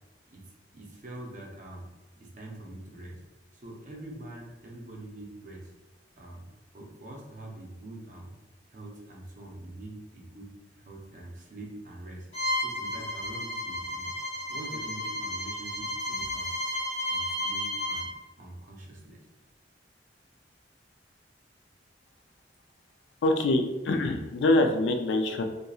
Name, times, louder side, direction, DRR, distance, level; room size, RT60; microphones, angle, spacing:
voice 1, 0.3-1.9 2.1-3.2 3.6-5.7 6.2-8.4 8.7-12.3 12.6-18.1 18.4-19.2, right 1 dB, 45° right, -1 dB, 0.6 m, -44 dB
Bowed string instrument, 12.3-18.1, left 1 dB, 40° left, 1.0 m, -32 dB
voice 2, 23.2-25.4, left 2 dB, 80° left, 5 dB, 0.3 m, -24 dB
2.7 x 2.5 x 2.3 m, 1.1 s
head